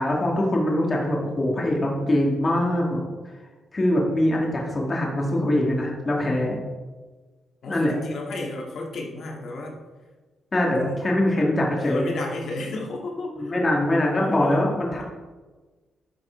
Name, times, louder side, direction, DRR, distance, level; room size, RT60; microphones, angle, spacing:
voice 1, 0.0-3.0 3.7-6.6 7.7-7.9 10.5-12.1 13.4-15.0, left 1 dB, 25° left, -2 dB, 1.9 m, -23 dB
voice 2, 7.6-9.7 10.7-11.3 11.8-13.5 14.1-14.6, left 2 dB, 55° left, -1 dB, 2.2 m, -32 dB
10.0 x 5.9 x 4.5 m, 1.3 s
cardioid pair, 140°, 0 cm